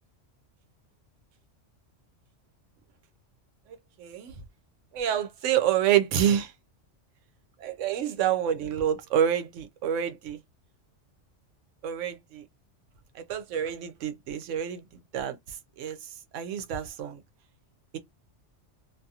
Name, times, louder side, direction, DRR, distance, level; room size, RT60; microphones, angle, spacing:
voice 1, 4.0-4.4 4.9-6.5 7.6-10.4 11.8-12.4 13.1-14.8 15.1-17.2, right 10 dB, 85° right, 0.9 m, -28 dB
2.6 x 2.3 x 2.7 m
omnidirectional pair, 1.3 m